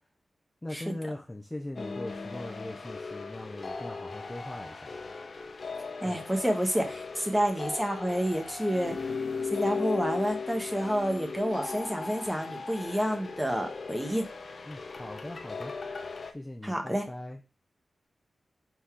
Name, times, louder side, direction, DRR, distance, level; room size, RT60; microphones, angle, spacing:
voice 1, 0.6-5.0 6.0-6.2 14.7-15.7 16.3-17.4, left 1 dB, 10° left, 0.7 m, -40 dB
sound 1, 1.8-16.3, left 4 dB, 45° left, 1.0 m, -37 dB
voice 2, 6.0-8.9 9.5-14.2 16.6-17.1, equal, 5° right, 1.5 m, -29 dB
6.0 x 4.2 x 4.8 m
wide cardioid pair, 145°, 0 cm